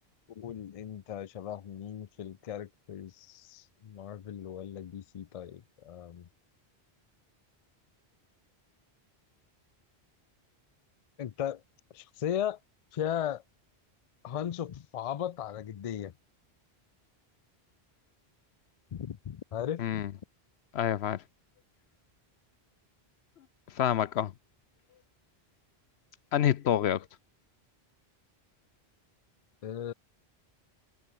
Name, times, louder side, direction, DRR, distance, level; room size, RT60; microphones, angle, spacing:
voice 1, 0.4-6.3 11.2-11.6 11.9-12.6 12.9-13.4 14.2-16.1 18.9-20.0 29.6-29.9, left 10 dB, 55° left, 0.4 m, -37 dB
voice 2, 19.8-20.1 20.7-21.2 23.7-24.3 26.3-27.1, left 10 dB, 80° left, 0.9 m, -27 dB
omnidirectional pair, 1.1 m